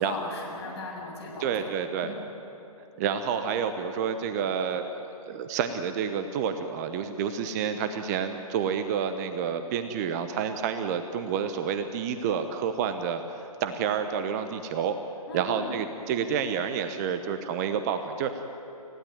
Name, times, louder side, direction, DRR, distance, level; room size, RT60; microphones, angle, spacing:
voice 1, 0.0-1.7 2.0-2.2 15.3-15.8, left 2 dB, 45° left, 0 dB, 7.5 m, -37 dB
voice 2, 1.4-2.1 3.0-13.2 13.6-15.0 15.3-18.5, right 7 dB, 25° right, 9 dB, 1.0 m, -29 dB
29.5 x 16.5 x 9.3 m, 2.9 s
figure-of-eight pair, 135°, 19 cm